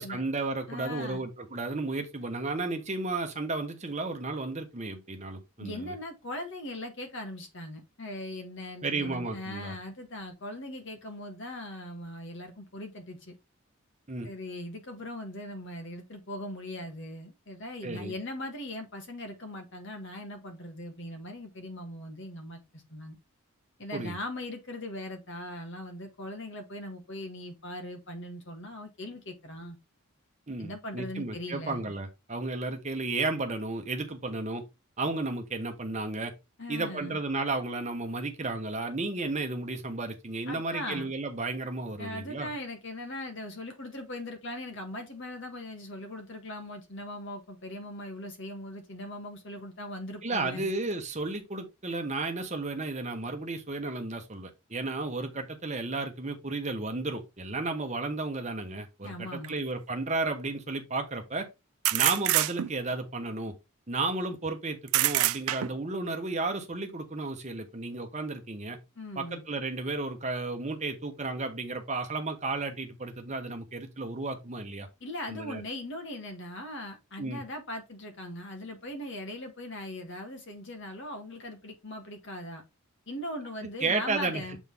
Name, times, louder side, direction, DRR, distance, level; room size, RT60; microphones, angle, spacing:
voice 1, 0.0-5.9 8.8-9.7 14.1-14.3 17.8-18.1 23.9-24.2 30.5-34.6 35.0-36.3 36.7-42.5 50.2-61.5 61.9-63.5 63.9-68.8 69.2-74.9 75.3-75.6 77.2-77.4 83.8-84.4, right 3 dB, 30° right, 1.0 m, -33 dB
voice 2, 0.7-1.2 5.6-13.3 14.2-23.2 23.8-29.8 30.6-31.8 36.6-37.2 40.5-41.1 42.0-50.7 59.0-59.6 69.0-69.4 75.0-82.6 83.1-84.6, left 1 dB, 55° left, 1.7 m, -40 dB
sound 1, 59.4-59.5 61.8-62.9 64.9-65.9, right 15 dB, 80° right, 0.4 m, -26 dB
7.2 x 3.9 x 3.4 m
head